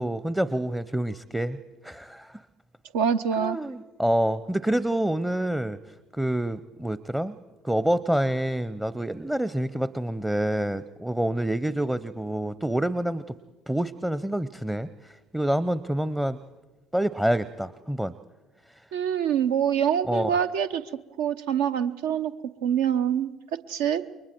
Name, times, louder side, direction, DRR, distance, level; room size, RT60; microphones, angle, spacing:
voice 1, 0.0-1.6 1.8-2.4 3.4-5.8 6.1-7.4 7.6-13.2 13.7-16.4 16.9-18.1 20.1-20.3, right 1 dB, 5° right, 18 dB, 0.7 m, -27 dB
voice 2, 2.9-3.6 18.9-20.8 21.2-22.3 22.6-23.3 23.7-24.0, right 8 dB, 70° right, 9 dB, 0.8 m, -25 dB
29.0 x 23.0 x 4.6 m, 1.2 s
figure-of-eight pair, 55°, 0 cm